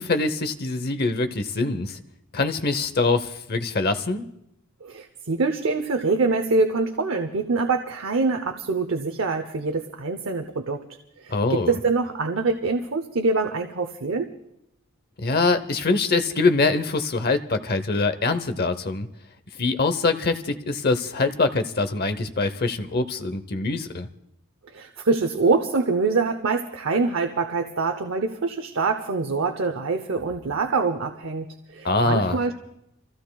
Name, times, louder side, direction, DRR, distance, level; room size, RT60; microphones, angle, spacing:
voice 1, 0.0-2.0 2.3-4.2 11.3-11.8 15.2-19.1 19.6-24.1 31.8-32.5, left 3 dB, 45° left, 11 dB, 0.8 m, -24 dB
voice 2, 4.8-10.8 11.2-14.3 24.7-32.5, right 3 dB, 60° right, 6 dB, 0.8 m, -25 dB
29.0 x 15.5 x 2.3 m, 0.81 s
head